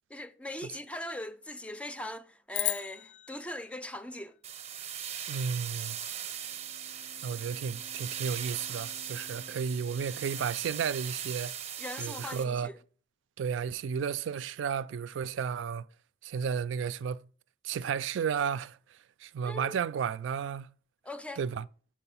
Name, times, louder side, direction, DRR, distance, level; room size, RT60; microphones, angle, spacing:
voice 1, 0.1-4.4 11.8-12.7 19.4-19.8 21.0-21.4, left 1 dB, 5° left, 0.4 m, -40 dB
sound 1, 2.5-5.0, left 12 dB, 65° left, 0.5 m, -37 dB
sound 2, 4.4-12.4, right 9 dB, 35° right, 0.6 m, -39 dB
voice 2, 5.3-6.0 7.2-11.5 12.0-12.7 13.4-15.9 16.2-17.3 17.6-18.8 19.2-20.7 21.4-21.7, right 7 dB, 85° right, 0.3 m, -33 dB
Bowed string instrument, 6.1-11.5, equal, 85° left, 2.7 m, -57 dB
6.7 x 5.0 x 5.5 m
head